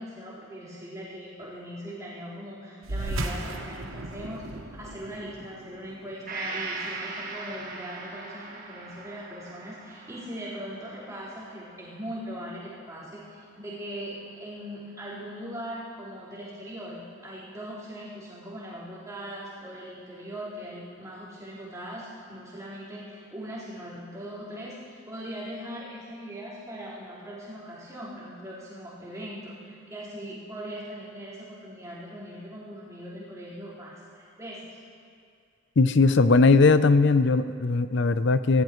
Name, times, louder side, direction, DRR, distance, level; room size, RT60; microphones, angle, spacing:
voice 1, 0.0-33.9 34.4-34.8, equal, 15° right, -10 dB, 4.2 m, -40 dB
sound 1, 2.8-7.7, right 1 dB, 75° right, 1.1 m, -36 dB
Gong, 6.3-13.9 14.3-14.4, right 3 dB, 40° right, 1.6 m, -40 dB
voice 2, 35.8-38.6, left 3 dB, 55° left, 12 dB, 0.5 m, -19 dB
21.0 x 17.0 x 3.1 m, 2.3 s
head